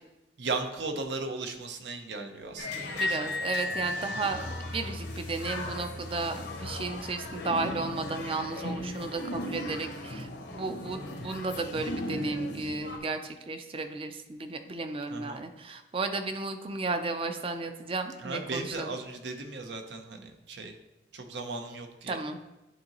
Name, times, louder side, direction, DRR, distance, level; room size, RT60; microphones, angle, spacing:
voice 1, 0.4-3.2 15.1-15.4 18.2-20.8 21.1-22.2, right 3 dB, 80° right, 5 dB, 0.7 m, -36 dB
sound 1, 2.6-13.0, left 2 dB, 70° left, 0.9 m, -36 dB
voice 2, 2.9-18.9 22.1-22.5, right 3 dB, 30° right, 7 dB, 0.5 m, -34 dB
10.0 x 3.8 x 3.0 m, 0.98 s
head